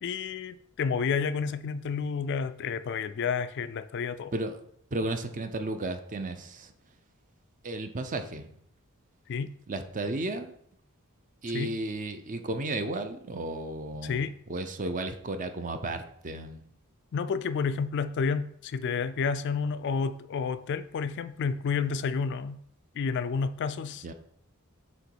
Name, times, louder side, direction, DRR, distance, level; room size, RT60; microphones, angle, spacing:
voice 1, 0.0-4.3 9.3-9.5 11.5-11.7 14.0-14.3 17.1-22.6 22.9-24.1, left 5 dB, 55° left, 12 dB, 0.3 m, -30 dB
voice 2, 4.9-6.7 7.6-8.5 9.7-10.5 11.4-14.2 14.5-16.6 24.0-24.1, right 2 dB, 35° right, 8 dB, 0.6 m, -33 dB
7.8 x 3.0 x 4.6 m, 0.67 s
head